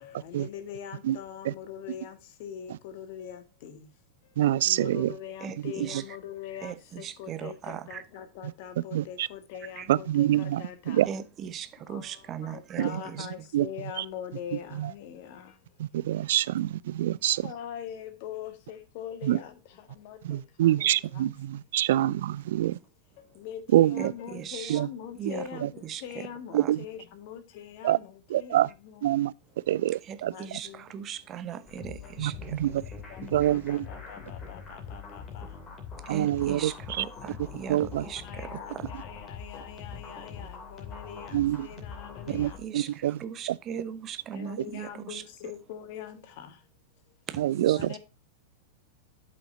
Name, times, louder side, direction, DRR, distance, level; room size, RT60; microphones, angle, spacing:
voice 1, 0.0-3.9 4.2-4.4 4.6-11.1 11.9-16.3 17.4-21.3 23.2-29.1 30.2-30.8 31.5-31.6 32.0-32.1 32.7-32.8 33.1-35.8 38.2-42.9 44.3-46.7 47.1-47.2 47.7-48.0, left 9 dB, 50° left, 1.5 m, -43 dB
voice 2, 4.4-5.1 8.9-9.3 9.9-11.1 12.8-12.9 13.5-13.7 14.0-14.1 14.7-14.9 15.8-17.5 19.2-19.4 20.2-22.8 23.7-24.1 24.7-24.9 25.6-25.7 26.5-26.8 27.8-28.0 28.3-28.7 29.0-29.3 29.7-30.3 32.2-32.7 33.3-33.8 36.1-36.7 37.7-38.1 41.3-41.7 42.3-43.2 47.4-47.8, right 13 dB, 55° right, 0.3 m, -25 dB
voice 3, 5.4-6.2 6.6-8.0 9.6-9.9 11.1-13.3 24.0-24.8 25.2-26.7 30.0-33.0 36.0-38.9 42.3-45.2 47.3-48.0, right 8 dB, 30° right, 0.9 m, -39 dB
sound 1, 31.7-42.6, left 5 dB, 25° left, 2.5 m, -43 dB
12.5 x 5.6 x 2.6 m
figure-of-eight pair, 90°, 0 cm